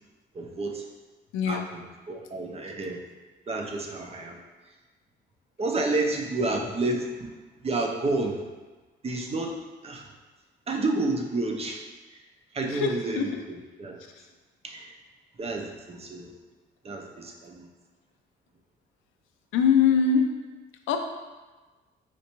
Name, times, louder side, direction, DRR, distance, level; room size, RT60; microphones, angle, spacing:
voice 1, 0.3-0.8 1.4-3.0 3.5-4.4 5.6-7.3 7.6-8.4 9.0-10.0 10.7-11.8 12.1-12.2 12.5-14.0 14.6-14.9 15.4-16.3 16.8-17.7, right 2 dB, 30° right, 1 dB, 0.5 m, -30 dB
voice 2, 1.3-1.7 12.7-13.4 14.2-14.3 19.5-20.4 20.9-21.0, left 6 dB, 90° left, 5 dB, 0.4 m, -23 dB
4.3 x 2.5 x 2.9 m, 1.3 s
cardioid pair, 90°, 20 cm